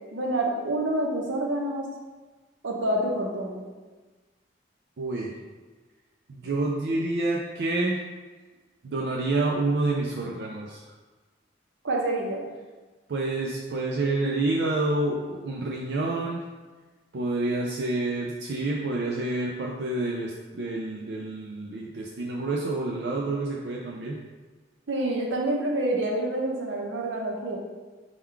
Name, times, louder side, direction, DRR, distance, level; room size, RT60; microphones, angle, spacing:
voice 1, 0.1-1.9 2.6-3.7 11.8-12.5 24.9-27.6, right 1 dB, 90° right, -1 dB, 0.7 m, -27 dB
voice 2, 5.0-5.3 6.3-8.0 8.8-10.8 13.1-16.4 17.1-24.2, right 2 dB, 65° right, -2 dB, 0.4 m, -28 dB
3.6 x 2.3 x 4.5 m, 1.3 s
head